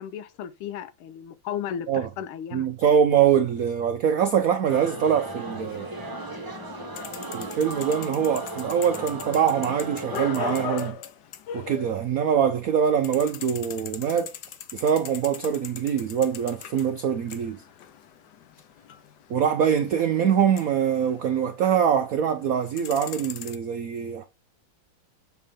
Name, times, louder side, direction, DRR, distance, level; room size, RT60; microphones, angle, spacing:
voice 1, 0.0-2.7, left 9 dB, 85° left, 1.6 m, -35 dB
voice 2, 2.5-5.9 7.3-11.0 11.5-14.3 14.7-17.6 19.3-24.2, right 8 dB, 80° right, 0.7 m, -23 dB
sound 1, 4.7-10.9, right 2 dB, 15° right, 0.7 m, -36 dB
sound 2, 7.0-12.4 12.7-22.0 22.4-23.6, left 8 dB, 65° left, 1.1 m, -40 dB
6.9 x 4.6 x 3.6 m
omnidirectional pair, 2.3 m